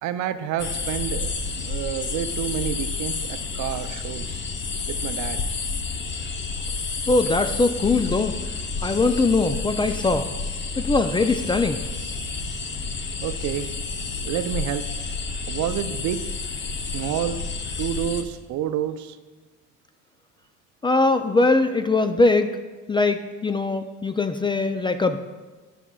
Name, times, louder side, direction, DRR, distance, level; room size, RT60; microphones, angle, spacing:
voice 1, 0.0-4.4 5.0-5.4 13.2-13.7 14.2-14.8 15.5-16.2 16.9-17.4 17.8-19.2, right 10 dB, 65° right, 11 dB, 0.5 m, -29 dB
sound 1, 0.6-18.2, left 4 dB, 35° left, 0.8 m, -30 dB
voice 2, 7.1-8.3 8.8-10.3 10.8-11.8 20.8-22.5 22.9-25.2, left 3 dB, 15° left, 8 dB, 0.3 m, -21 dB
12.0 x 6.1 x 2.3 m, 1.3 s
cardioid pair, 90°, 31 cm